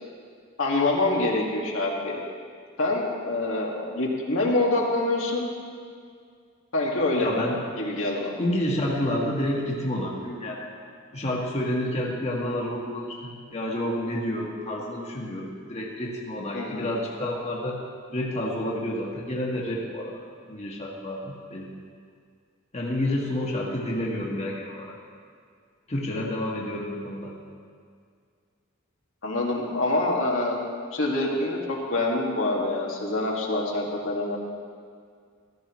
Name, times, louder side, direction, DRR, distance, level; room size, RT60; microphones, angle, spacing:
voice 1, 0.6-2.2 2.8-5.5 6.7-7.3 7.8-8.3 16.5-16.9 29.2-30.6 30.9-34.4, left 2 dB, 85° left, -2 dB, 1.8 m, -26 dB
voice 2, 7.2-7.6 8.4-10.7 11.1-17.8 18.1-21.7 22.7-24.9 25.9-27.3, left 1 dB, 35° left, -3 dB, 1.5 m, -29 dB
14.5 x 13.0 x 3.1 m, 2.1 s
head